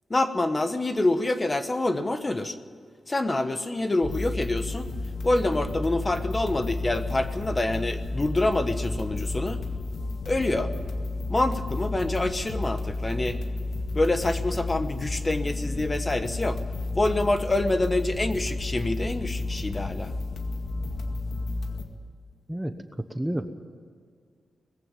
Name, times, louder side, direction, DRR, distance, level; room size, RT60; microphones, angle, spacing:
voice 1, 0.1-2.6 3.1-4.9 5.2-9.6 10.3-10.7 11.3-13.4 13.9-16.6 16.9-20.1, left 2 dB, 20° left, 9 dB, 1.1 m, -26 dB
sound 1, 4.0-21.8, left 2 dB, 70° left, 2.0 m, -32 dB
voice 2, 23.1-23.5, right 1 dB, 5° right, 7 dB, 0.9 m, -29 dB
20.0 x 15.5 x 9.1 m, 2.1 s
wide cardioid pair, 150°, 0 cm